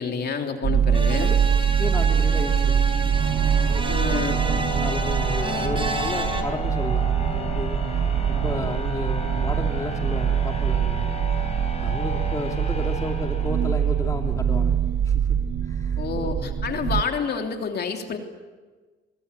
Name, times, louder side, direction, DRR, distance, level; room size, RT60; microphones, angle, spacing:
voice 1, 0.0-1.3 3.9-4.4 16.0-18.2, left 6 dB, 55° left, 4 dB, 3.1 m, -28 dB
sound 1, 0.6-17.0, right 8 dB, 55° right, 0.9 m, -24 dB
sound 2, 0.9-6.4, right 2 dB, 25° right, 4.2 m, -31 dB
sound 3, 1.3-14.2, left 2 dB, 30° left, 5.8 m, -34 dB
voice 2, 1.8-3.0 3.7-7.8 8.3-11.1 11.8-15.4 15.6-16.5 16.9-17.0, left 2 dB, 15° left, 3 dB, 2.7 m, -33 dB
24.0 x 22.5 x 8.3 m, 1.4 s
cardioid pair, 90°, 20 cm